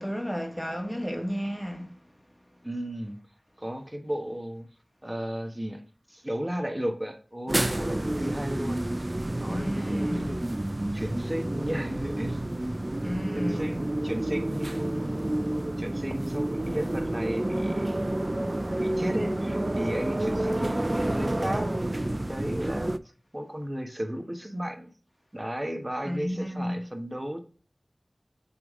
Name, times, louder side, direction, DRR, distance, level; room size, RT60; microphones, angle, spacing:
voice 1, 0.0-1.9 9.5-10.3 13.0-13.7 26.0-26.8, equal, 10° left, 1.5 m, -32 dB
voice 2, 2.6-3.2 3.6-4.7 5.0-8.8 9.4-10.4 10.8-12.4 13.3-18.5 18.8-22.9 23.3-24.9 25.3-27.4, equal, 20° right, 1.1 m, -35 dB
sound 1, 7.5-23.0, right 1 dB, 35° right, 0.4 m, -29 dB
7.7 x 3.5 x 3.6 m
wide cardioid pair, 45°, 0 cm